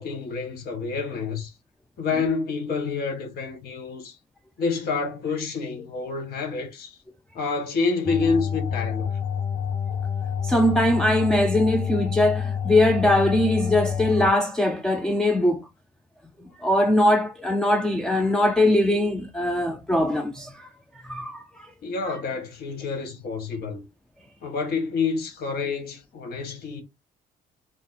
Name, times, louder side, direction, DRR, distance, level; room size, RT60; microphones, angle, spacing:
voice 1, 0.0-1.5 2.0-4.1 4.6-6.9 7.3-9.1 21.8-23.8 24.4-26.8, left 4 dB, 65° left, 1.5 m, -28 dB
sound 1, 8.1-14.3, left 7 dB, 25° left, 1.5 m, -28 dB
voice 2, 10.4-15.7 16.6-20.7 21.0-21.7, left 1 dB, 5° left, 0.4 m, -21 dB
4.3 x 2.1 x 4.1 m
cardioid pair, 110°, 17 cm